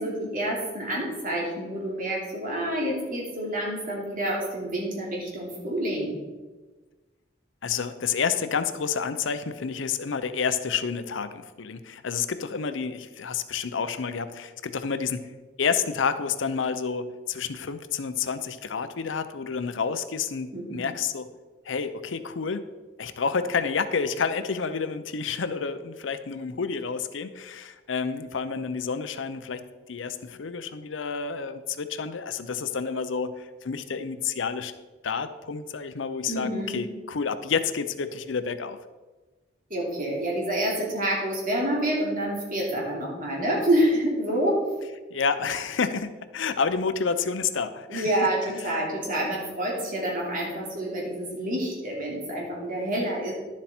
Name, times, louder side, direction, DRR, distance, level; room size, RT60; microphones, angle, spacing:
voice 1, 0.0-6.1 20.5-20.8 36.3-36.8 39.7-44.6 47.9-53.3, right 1 dB, 45° right, -3 dB, 2.9 m, -28 dB
voice 2, 7.6-15.3 15.6-21.3 21.6-22.7 23.0-34.7 35.0-38.8 45.1-48.1 48.5-48.8, left 5 dB, 75° left, 11 dB, 0.6 m, -29 dB
11.0 x 7.4 x 4.3 m, 1.3 s
head